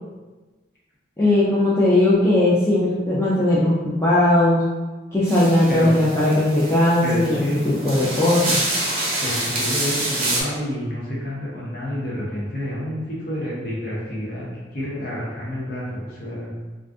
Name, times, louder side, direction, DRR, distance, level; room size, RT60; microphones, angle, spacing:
voice 1, 1.2-4.6 5.1-8.6, left 1 dB, 15° left, -8 dB, 0.4 m, -18 dB
sound 1, 5.3-10.4, right 2 dB, 35° right, 0.6 m, -27 dB
voice 2, 7.0-7.6 9.2-14.5 14.7-16.5, equal, 55° left, -6 dB, 0.9 m, -29 dB
2.5 x 2.3 x 3.5 m, 1.2 s
head